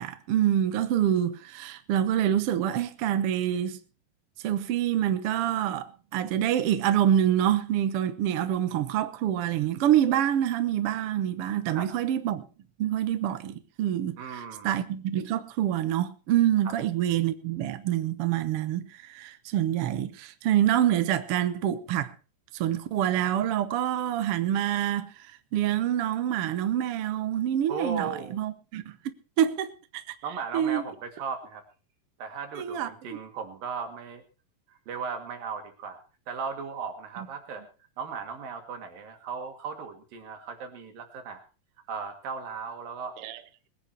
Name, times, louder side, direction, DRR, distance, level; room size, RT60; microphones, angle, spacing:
voice 1, 0.0-3.8 4.4-12.4 12.8-22.1 22.5-25.1 25.5-29.7 29.9-30.1 30.5-30.8 32.6-32.9 43.2-43.4, right 11 dB, 65° right, 1.4 m, -26 dB
voice 2, 14.2-14.8 16.7-16.8 27.7-28.4 30.2-31.6 32.2-34.2 34.7-37.6 38.0-41.4 41.9-43.2, right 5 dB, 85° right, 4.0 m, -37 dB
21.0 x 9.9 x 4.4 m
omnidirectional pair, 3.9 m